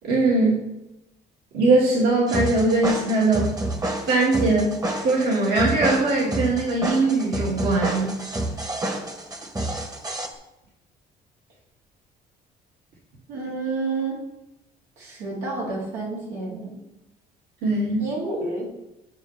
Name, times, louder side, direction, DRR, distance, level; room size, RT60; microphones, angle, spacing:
voice 1, 0.0-0.7 1.5-3.5 4.1-8.1 17.6-18.1, right 2 dB, 70° right, -5 dB, 2.6 m, -21 dB
sound 1, 2.3-10.3, right 1 dB, 20° right, 1.2 m, -28 dB
voice 2, 13.3-14.2 15.0-16.8 18.0-18.7, right 3 dB, 90° right, -5 dB, 3.3 m, -29 dB
9.6 x 6.7 x 3.5 m, 0.89 s
cardioid pair, 110°, 17 cm